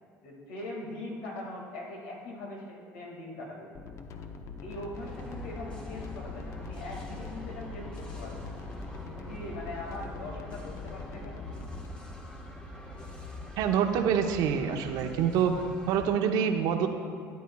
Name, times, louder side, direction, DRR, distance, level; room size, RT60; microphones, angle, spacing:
voice 1, 0.2-3.7 4.6-8.5 9.1-11.5, left 1 dB, 85° left, -1 dB, 1.9 m, -41 dB
sound 1, 3.8-11.9, left 5 dB, 45° left, 0.7 m, -44 dB
sound 2, 4.9-16.1, left 1 dB, 15° left, 1.3 m, -44 dB
voice 2, 13.6-15.5 15.9-16.9, right 8 dB, 70° right, 6 dB, 0.8 m, -26 dB
12.5 x 9.3 x 2.3 m, 2.4 s
supercardioid pair, 90°, 7 cm